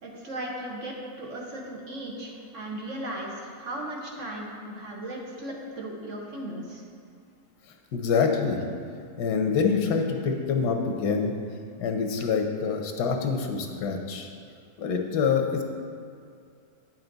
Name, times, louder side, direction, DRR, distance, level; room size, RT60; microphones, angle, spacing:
voice 1, 0.0-6.8, right 1 dB, 55° right, -1 dB, 1.3 m, -36 dB
voice 2, 7.9-8.6 9.2-11.4 11.8-14.3 14.8-15.6, left 5 dB, 90° left, 3 dB, 1.4 m, -26 dB
9.3 x 5.9 x 3.9 m, 2.3 s
omnidirectional pair, 1.7 m